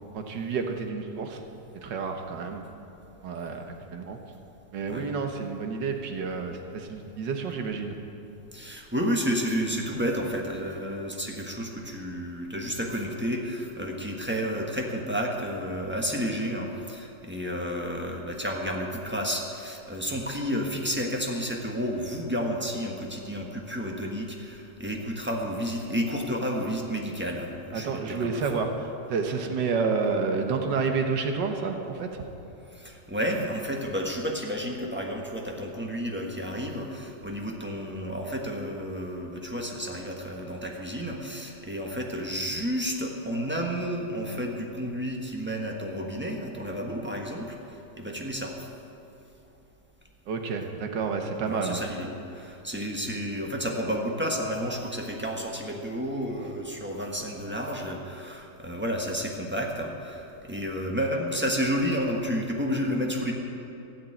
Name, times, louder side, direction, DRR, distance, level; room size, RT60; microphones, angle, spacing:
voice 1, 0.1-1.4 1.7-2.6 3.2-4.2 4.7-8.0 27.7-32.2 50.3-51.8, right 5 dB, 85° right, 4 dB, 1.8 m, -30 dB
voice 2, 8.5-28.7 32.7-48.5 51.5-63.3, equal, 5° right, 0 dB, 1.2 m, -31 dB
14.5 x 7.4 x 8.8 m, 2.8 s
omnidirectional pair, 1.9 m